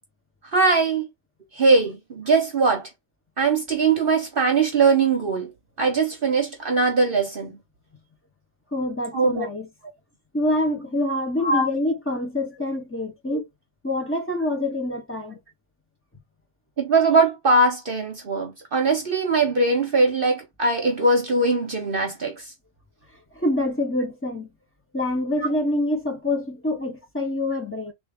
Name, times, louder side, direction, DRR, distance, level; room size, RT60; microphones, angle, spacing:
voice 1, 0.5-1.1 1.5-2.9 3.4-5.5 5.8-7.6 9.1-9.5 11.4-11.7 13.3-13.4 16.8-22.5 25.4-25.5, right 3 dB, 50° right, 0.8 m, -21 dB
voice 2, 8.7-9.7 10.3-13.4 13.8-15.4 23.4-24.5 24.9-27.9, left 1 dB, 20° left, 0.3 m, -26 dB
3.4 x 2.5 x 3.4 m
omnidirectional pair, 1.4 m